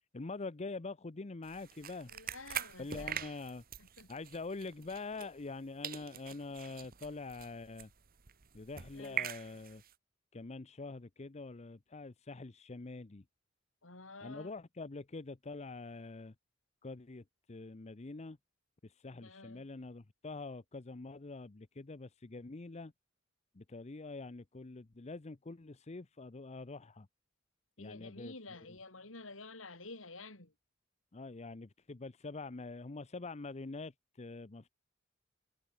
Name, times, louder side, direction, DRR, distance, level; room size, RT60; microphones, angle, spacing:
voice 1, 0.1-2.1 2.8-3.6 4.1-7.9 8.5-9.8 10.3-13.2 14.2-16.3 16.8-18.4 18.8-22.9 23.5-27.1 27.8-28.8 31.1-34.7, left 3 dB, 35° left, 0.7 m, -45 dB
sound 1, 1.4-5.6 5.8-9.9, right 9 dB, 50° right, 1.1 m, -44 dB
voice 2, 2.1-3.2 3.8-4.1 8.9-9.3 13.8-14.5 19.2-19.7 27.8-30.5, left 3 dB, 85° left, 5.1 m, -50 dB
head